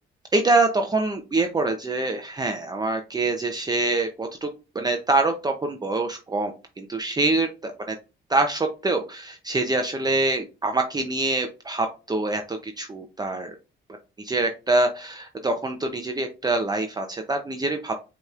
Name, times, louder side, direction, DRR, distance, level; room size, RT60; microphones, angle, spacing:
voice 1, 0.3-4.5 4.7-7.9 8.3-13.5 14.2-17.9, right 2 dB, 20° right, 4 dB, 0.6 m, -25 dB
5.4 x 3.0 x 2.4 m, 0.30 s
cardioid pair, 90°, 20 cm